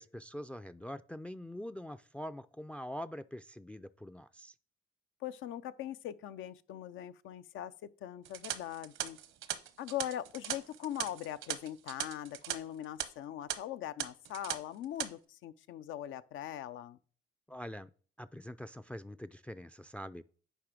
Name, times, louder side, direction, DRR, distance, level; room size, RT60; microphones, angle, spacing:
voice 1, 0.0-4.5 17.5-17.9 18.2-20.2, equal, 5° left, 0.3 m, -44 dB
voice 2, 5.2-9.2 9.8-17.0, left 11 dB, 85° left, 0.5 m, -41 dB
sound 1, 8.3-12.6 12.8-13.0 13.5-13.6 14.0-14.6 14.8-15.1, right 11 dB, 80° right, 0.9 m, -38 dB
10.0 x 3.3 x 6.1 m
cardioid pair, 90°, 20 cm